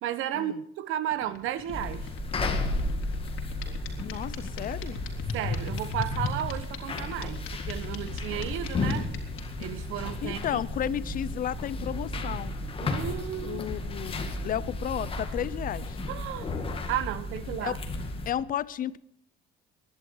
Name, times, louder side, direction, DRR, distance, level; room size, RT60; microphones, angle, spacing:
voice 1, 0.0-2.1 5.3-9.1 9.6-10.6 12.8-13.6 16.1-16.5 16.9-17.8, right 11 dB, 75° right, 14 dB, 1.4 m, -33 dB
sound 1, 1.1-9.6, left 6 dB, 65° left, 3.5 m, -35 dB
sound 2, 1.7-18.3, left 2 dB, 25° left, 2.2 m, -34 dB
voice 2, 4.0-5.0 10.2-12.6 13.4-16.0 17.6-17.8 18.3-19.0, left 10 dB, 40° left, 18 dB, 0.6 m, -33 dB
21.5 x 11.0 x 4.7 m, 0.72 s
cardioid pair, 160°, 21 cm